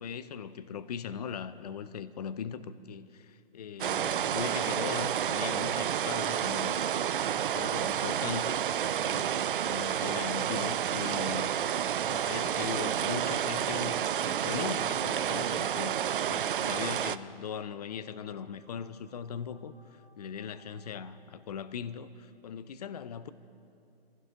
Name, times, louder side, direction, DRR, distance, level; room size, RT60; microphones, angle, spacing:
voice 1, 0.0-11.5 12.0-23.3, left 7 dB, 40° left, 15 dB, 0.5 m, -40 dB
sound 1, 3.8-17.2, right 9 dB, 60° right, 0.5 m, -30 dB
sound 2, 10.4-21.2, right 2 dB, 15° right, 2.6 m, -63 dB
23.5 x 16.0 x 3.7 m, 2.6 s
hypercardioid pair, 155°, 30 cm